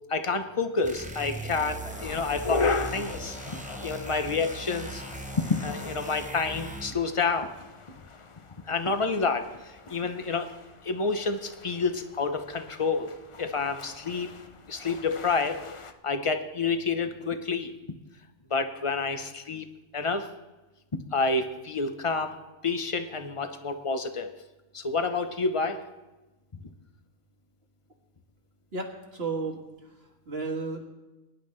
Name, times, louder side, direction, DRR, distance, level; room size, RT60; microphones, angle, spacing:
voice 1, 0.1-5.0 5.4-7.5 8.7-10.5 10.8-13.1 13.4-14.3 14.7-15.6 16.0-17.7 18.5-19.7 19.9-20.3 20.9-22.4 22.6-24.3 24.7-25.8, left 4 dB, 30° left, 8 dB, 0.7 m, -29 dB
sound 1, 0.8-7.1, right 2 dB, 10° right, 0.5 m, -39 dB
sound 2, 1.9-15.9, left 4 dB, 50° left, 0.3 m, -38 dB
voice 2, 28.7-29.9 30.3-30.8, right 4 dB, 45° right, 2 dB, 1.9 m, -33 dB
22.5 x 11.0 x 3.2 m, 1.1 s
omnidirectional pair, 1.4 m